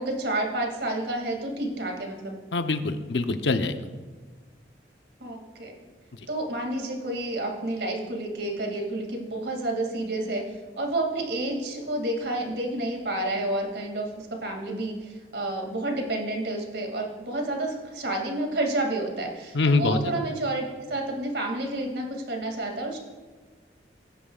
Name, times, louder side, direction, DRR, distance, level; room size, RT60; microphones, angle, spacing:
voice 1, 0.0-2.3 5.2-5.7 6.3-10.4 10.8-23.0, right 1 dB, 80° right, 2 dB, 2.3 m, -30 dB
voice 2, 2.5-3.9 6.2-6.3 19.5-20.1, left 3 dB, 85° left, 8 dB, 0.7 m, -24 dB
19.0 x 10.0 x 2.4 m, 1.4 s
head